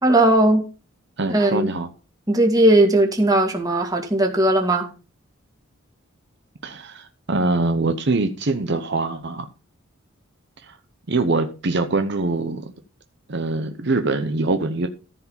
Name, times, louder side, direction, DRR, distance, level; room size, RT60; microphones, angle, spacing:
voice 1, 0.0-0.7 1.3-1.7 2.3-4.9, right 1 dB, 20° right, 2.1 m, -18 dB
voice 2, 1.2-1.9 6.6-9.5 10.6-10.8 11.1-12.7 13.3-14.9, right 3 dB, 55° right, 0.8 m, -23 dB
14.0 x 4.9 x 5.5 m
head